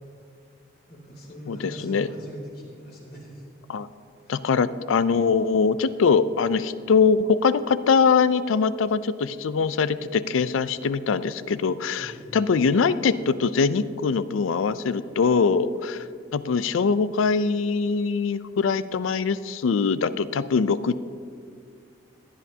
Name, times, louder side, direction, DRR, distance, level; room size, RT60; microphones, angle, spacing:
voice 1, 0.9-3.5 4.2-4.4 12.0-12.3, equal, 50° left, -3 dB, 3.2 m, -41 dB
voice 2, 4.3-16.0 16.3-21.0, left 5 dB, 85° left, 15 dB, 0.4 m, -22 dB
16.0 x 10.5 x 2.8 m, 2.2 s
head